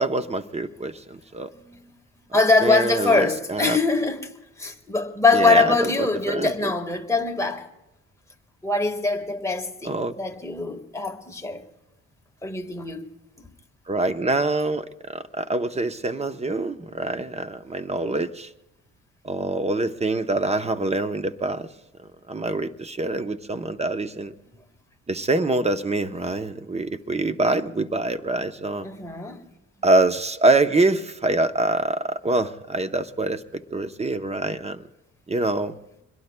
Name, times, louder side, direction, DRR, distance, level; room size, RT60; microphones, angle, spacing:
voice 1, 0.0-1.5 2.6-3.8 5.3-6.7 9.8-10.1 13.9-18.5 19.2-21.7 22.3-24.3 25.1-28.9 29.8-34.8 35.3-35.7, right 2 dB, 20° right, 0.8 m, -25 dB
voice 2, 2.3-4.3 4.6-7.7 8.6-11.6 12.4-13.1 13.4-13.5 28.8-29.4, left 3 dB, 10° left, 1.6 m, -23 dB
25.5 x 21.5 x 2.2 m
cardioid pair, 90°, 30 cm